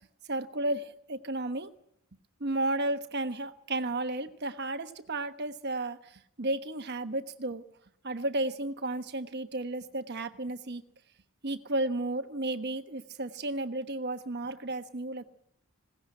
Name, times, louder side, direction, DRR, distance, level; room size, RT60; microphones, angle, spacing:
voice 1, 0.3-1.7 2.4-6.1 6.4-7.6 8.0-10.8 11.4-15.2, right 2 dB, 50° right, 9 dB, 1.2 m, -33 dB
20.5 x 17.5 x 8.9 m, 0.76 s
head